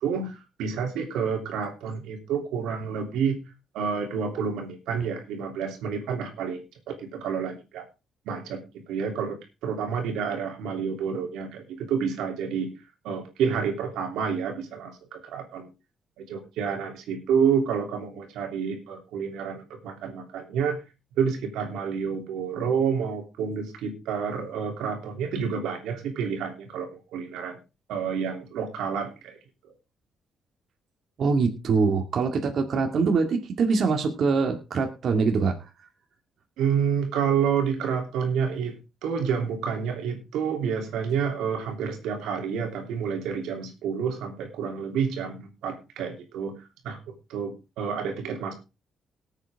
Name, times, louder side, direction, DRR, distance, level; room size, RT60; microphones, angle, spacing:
voice 1, 0.0-3.4 3.7-7.8 8.3-8.6 8.9-9.4 9.6-12.7 13.0-15.7 16.3-20.8 21.2-27.6 27.9-29.4 36.6-46.6 46.8-47.0 47.3-48.5, right 6 dB, 90° right, 4 dB, 3.0 m, -29 dB
voice 2, 31.2-35.6, right 4 dB, 60° right, 3 dB, 2.1 m, -23 dB
19.0 x 8.2 x 3.5 m, 0.28 s
cardioid pair, 90°, 0 cm